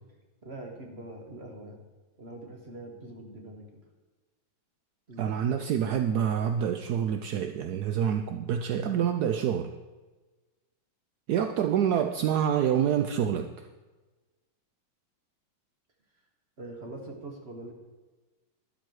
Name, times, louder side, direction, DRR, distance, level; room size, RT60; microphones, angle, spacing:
voice 1, 0.4-1.8 2.2-3.8 5.1-5.6 16.6-17.7, right 2 dB, 35° right, 2 dB, 1.7 m, -43 dB
voice 2, 5.2-9.7 11.3-13.7, right 9 dB, 75° right, 7 dB, 0.9 m, -27 dB
12.0 x 11.0 x 4.8 m, 1.2 s
omnidirectional pair, 2.3 m